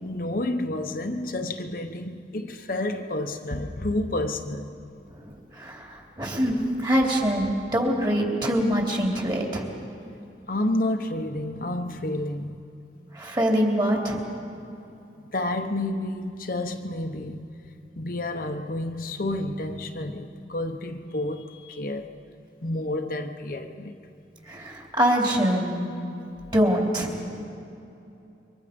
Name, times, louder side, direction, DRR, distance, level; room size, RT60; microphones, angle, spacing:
voice 1, 0.0-4.8 10.5-12.6 15.3-17.4 18.0-22.1 22.6-23.9, left 1 dB, 50° left, 1.0 m, -30 dB
voice 2, 5.5-9.7 13.1-14.2 24.5-25.8 26.5-27.4, equal, 25° right, 3.3 m, -24 dB
28.0 x 24.0 x 5.3 m
head